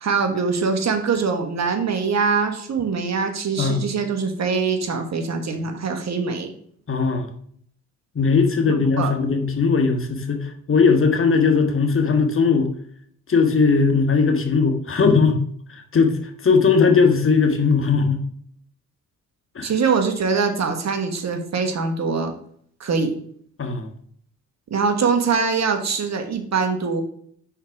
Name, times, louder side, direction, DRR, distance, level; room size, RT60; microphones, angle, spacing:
voice 1, 0.0-6.5 8.7-9.1 19.6-22.3 22.8-23.1 24.7-27.0, right 5 dB, 45° right, 5 dB, 1.4 m, -23 dB
voice 2, 6.9-7.3 8.1-12.7 13.3-15.4 15.7-18.2 19.5-19.7 23.6-23.9, left 5 dB, 35° left, 5 dB, 1.4 m, -19 dB
5.8 x 4.5 x 4.7 m, 0.62 s
supercardioid pair, 55°, 37 cm